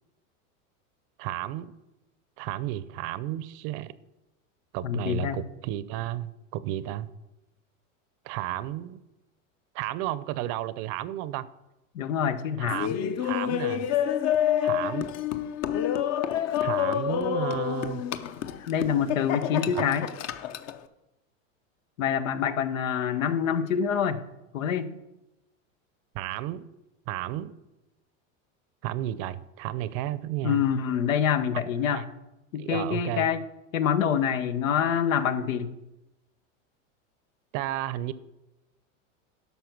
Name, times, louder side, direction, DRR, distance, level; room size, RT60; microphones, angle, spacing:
voice 1, 1.2-1.7 2.4-3.9 4.7-7.1 8.2-9.0 9.7-11.5 12.6-13.9 14.6-15.1 16.6-18.0 19.7-19.8 26.1-26.7 27.1-27.5 28.8-30.6 31.5-32.0 32.6-33.3 37.5-38.1, right 14 dB, 50° right, 0.7 m, -33 dB
voice 2, 4.8-5.4 11.9-13.0 18.7-20.1 22.0-24.2 24.5-24.9 30.4-32.0 32.5-33.4 33.7-35.7, left 8 dB, 90° left, 1.0 m, -26 dB
Laughter, 12.7-20.8, left 10 dB, 40° left, 0.8 m, -28 dB
12.5 x 5.7 x 5.9 m
supercardioid pair, 115°, 39 cm